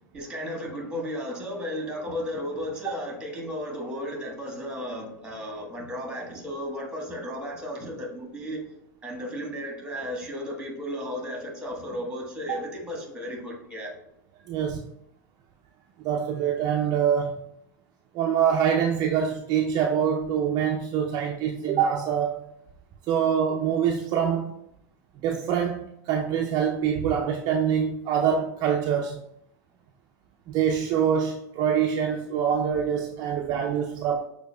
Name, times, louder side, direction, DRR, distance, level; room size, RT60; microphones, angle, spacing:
voice 1, 0.1-8.6 9.0-13.9, equal, 10° right, 1.3 m, -34 dB
voice 2, 14.5-14.8 16.0-17.4 18.1-22.5 23.1-24.5 25.2-29.2 30.5-34.2, right 8 dB, 45° right, 0.4 m, -25 dB
6.2 x 2.2 x 2.2 m
hypercardioid pair, 90°, 10 cm